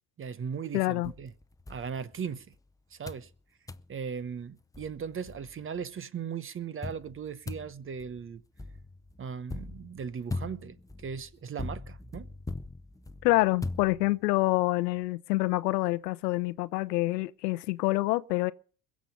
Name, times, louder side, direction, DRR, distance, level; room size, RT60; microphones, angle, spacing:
voice 1, 0.2-1.3 1.7-2.5 2.9-3.3 3.9-8.4 9.2-12.3, right 6 dB, 25° right, 0.9 m, -38 dB
voice 2, 0.7-1.1 13.2-18.5, left 20 dB, 85° left, 0.8 m, -27 dB
sound 1, 1.0-2.6 3.1-3.3 3.7-3.9 4.4-4.5 4.7-5.8 6.8-14.4, left 2 dB, 5° left, 0.7 m, -41 dB
22.0 x 7.4 x 5.4 m
hypercardioid pair, 85°, 47 cm